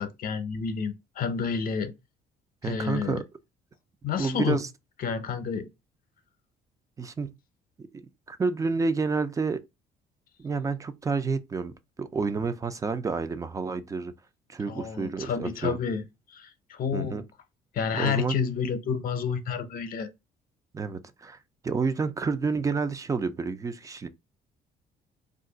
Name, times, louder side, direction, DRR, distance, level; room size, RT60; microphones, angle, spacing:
voice 1, 0.0-1.9 2.6-3.2 4.0-4.6 5.0-5.7 14.7-16.0 16.3-17.2 17.7-20.1, left 6 dB, 55° left, 0.7 m, -30 dB
voice 2, 2.6-3.2 4.2-4.7 7.0-7.3 7.8-9.6 10.4-14.1 14.5-15.8 16.9-17.2 18.0-18.4 20.7-21.4 21.6-24.1, right 4 dB, 20° right, 0.4 m, -29 dB
2.4 x 2.3 x 3.8 m
cardioid pair, 110°, 17 cm